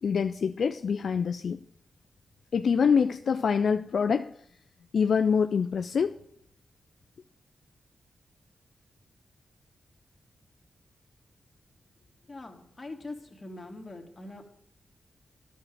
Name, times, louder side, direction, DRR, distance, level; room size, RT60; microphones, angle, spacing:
voice 1, 0.0-1.6 2.5-4.3 4.9-6.2, left 6 dB, 70° left, 9 dB, 0.3 m, -25 dB
voice 2, 12.2-14.4, left 2 dB, 35° left, 3 dB, 2.2 m, -43 dB
10.5 x 6.5 x 7.5 m, 0.70 s
cardioid pair, 50°, 0 cm